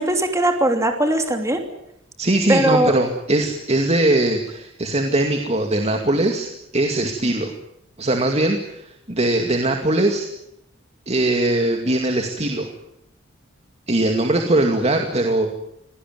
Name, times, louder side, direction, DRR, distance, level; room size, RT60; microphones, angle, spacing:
voice 1, 0.0-1.6 2.5-2.9, right 1 dB, 15° right, 5 dB, 3.0 m, -19 dB
voice 2, 2.2-7.5 8.0-10.3 11.1-12.7 13.9-15.5, right 1 dB, 35° right, 4 dB, 2.4 m, -21 dB
25.5 x 18.5 x 9.4 m, 0.80 s
head